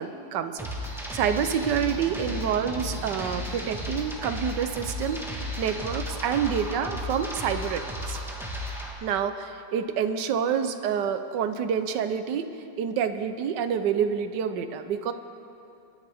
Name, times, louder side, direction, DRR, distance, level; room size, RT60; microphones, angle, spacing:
voice 1, 0.0-8.2 9.0-12.5 12.8-15.1, right 7 dB, 75° right, 9 dB, 1.3 m, -28 dB
sound 1, 0.6-8.9, left 1 dB, ahead, 1.2 m, -34 dB
25.5 x 10.0 x 3.5 m, 2.7 s
omnidirectional pair, 1.9 m